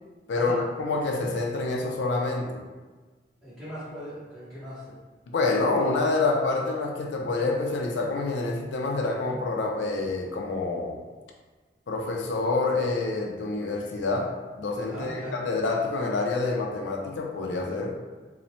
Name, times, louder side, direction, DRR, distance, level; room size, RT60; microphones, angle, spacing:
voice 1, 0.3-2.6 5.3-11.0 11.9-18.0, left 3 dB, 85° left, 1 dB, 0.4 m, -27 dB
voice 2, 3.4-4.9 14.8-15.4, equal, ahead, -15 dB, 0.7 m, -39 dB
2.9 x 2.0 x 2.6 m, 1.4 s
head